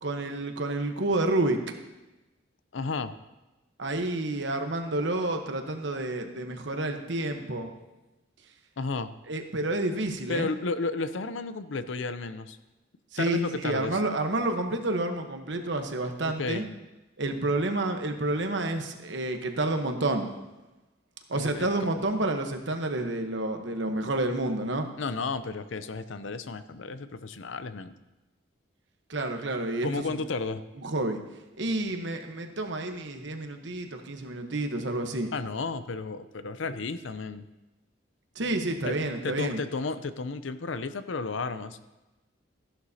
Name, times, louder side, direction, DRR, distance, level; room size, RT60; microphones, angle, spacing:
voice 1, 0.0-1.6 3.8-7.7 9.3-10.5 13.1-13.4 13.6-16.6 17.2-20.3 21.3-24.9 29.1-30.2 30.8-31.2 31.6-35.3 38.3-39.6, right 2 dB, 65° right, 5 dB, 1.1 m, -29 dB
voice 2, 2.7-3.1 8.8-9.1 10.3-12.6 13.2-14.0 16.2-16.7 21.3-21.7 21.9-22.0 25.0-27.9 29.8-30.6 35.3-37.5 38.8-39.0 39.2-41.8, left 3 dB, 75° left, 12 dB, 0.6 m, -33 dB
14.5 x 11.0 x 2.8 m, 1.0 s
head